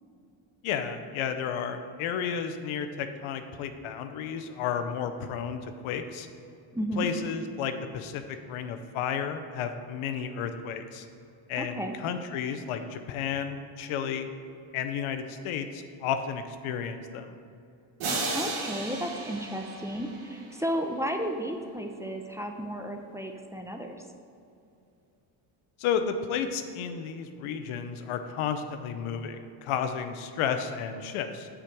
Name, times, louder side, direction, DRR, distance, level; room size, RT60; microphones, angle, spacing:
voice 1, 0.6-6.3 7.0-11.0 11.5-14.3 14.7-17.4 25.8-31.5, left 7 dB, 85° left, 8 dB, 0.8 m, -32 dB
voice 2, 6.7-7.1 11.6-12.0 18.0-24.0, equal, 5° right, 3 dB, 0.6 m, -33 dB
sound 1, 18.0-20.7, right 3 dB, 85° right, 1.6 m, -34 dB
7.4 x 5.1 x 6.1 m, 2.6 s
cardioid pair, 95°, 48 cm